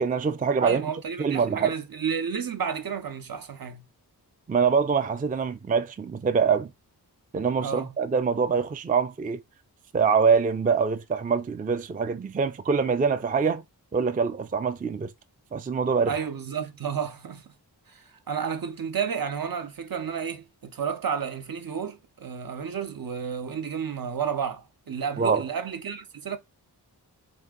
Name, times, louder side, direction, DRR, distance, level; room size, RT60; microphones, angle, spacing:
voice 1, 0.0-0.8 1.2-1.7 4.5-6.7 7.3-9.4 9.9-13.6 13.9-15.1 15.5-16.1 25.2-25.4, right 5 dB, 25° right, 0.3 m, -24 dB
voice 2, 0.6-3.8 7.6-7.9 16.1-17.4 17.9-26.4, right 7 dB, 60° right, 0.7 m, -31 dB
3.6 x 2.8 x 3.6 m
wide cardioid pair, 65°, 39 cm